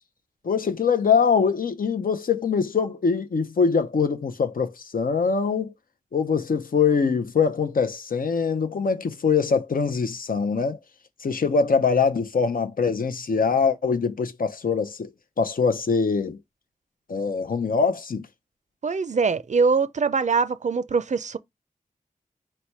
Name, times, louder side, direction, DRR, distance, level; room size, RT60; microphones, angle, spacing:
voice 1, 0.4-5.7 6.1-10.8 11.2-15.1 15.4-16.4 17.1-18.3, left 5 dB, 85° left, 0.6 m, -23 dB
voice 2, 18.8-21.4, right 5 dB, 55° right, 0.4 m, -23 dB
4.1 x 2.2 x 4.5 m
wide cardioid pair, 75°, 14 cm